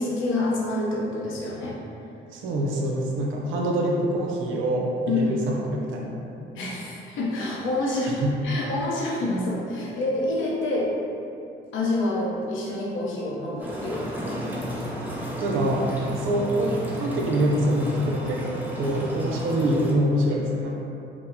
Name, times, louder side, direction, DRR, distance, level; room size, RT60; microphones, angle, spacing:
voice 1, 0.0-1.8 5.1-5.3 6.5-11.0 11.7-14.0, left 2 dB, 80° left, -4 dB, 0.7 m, -27 dB
voice 2, 2.3-6.2 8.2-8.3 15.4-15.9 16.1-18.4 18.8-20.8, right 1 dB, 90° right, -1 dB, 0.5 m, -25 dB
sound 1, 13.6-19.9, right 1 dB, 10° right, 0.6 m, -32 dB
4.5 x 2.0 x 2.6 m, 2.7 s
cardioid pair, 90°, 20 cm